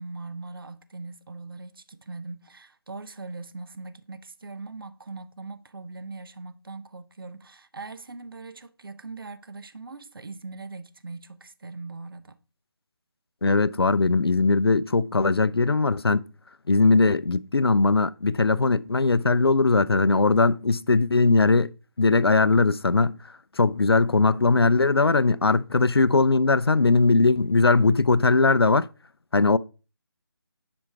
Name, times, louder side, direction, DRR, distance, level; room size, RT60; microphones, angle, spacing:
voice 1, 0.0-12.3, right 3 dB, 65° right, 0.9 m, -40 dB
voice 2, 13.4-16.2 16.7-21.7 22.0-23.2 23.6-28.9 29.3-29.6, left 3 dB, 80° left, 0.5 m, -20 dB
10.0 x 5.1 x 3.5 m
figure-of-eight pair, 155°, 13 cm